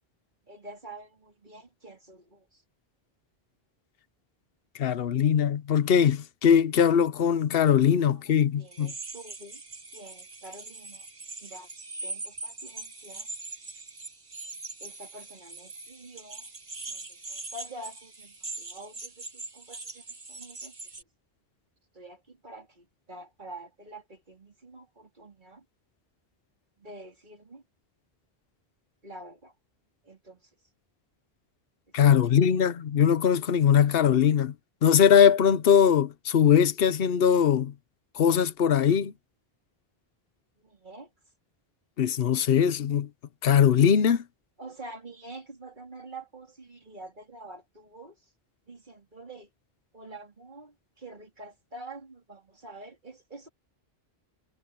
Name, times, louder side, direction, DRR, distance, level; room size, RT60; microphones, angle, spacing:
voice 1, 0.5-2.6 8.1-8.2 8.6-9.6 9.9-11.1 11.4-11.7 12.0-13.3 14.8-16.5 16.9-20.7 21.9-25.6 26.8-27.6 29.0-29.5 30.0-30.5 32.2-32.5 40.6-41.1 44.6-48.2 48.7-49.5 49.9-53.5, right 2 dB, 50° right, 3.8 m, -47 dB
voice 2, 4.8-8.9 31.9-34.5 34.8-37.7 38.2-39.1 42.0-43.1 43.4-44.2, left 8 dB, 65° left, 1.0 m, -21 dB
sound 1, 8.7-21.0, right 3 dB, 30° right, 1.3 m, -42 dB
omnidirectional pair, 1.1 m